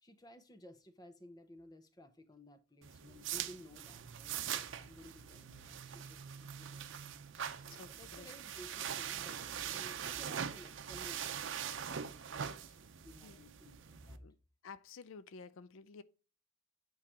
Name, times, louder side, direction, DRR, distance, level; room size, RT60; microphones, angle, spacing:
voice 1, 0.0-4.4 4.7-6.9 7.6-11.5 13.0-14.2, left 1 dB, 20° left, 0.7 m, -56 dB
sound 1, 2.8-14.2, right 8 dB, 75° right, 0.6 m, -43 dB
voice 2, 7.7-8.3 12.7-12.8 13.2-13.4 14.2-14.4 14.6-16.0, left 5 dB, 80° left, 0.4 m, -52 dB
8.6 x 3.2 x 4.7 m
head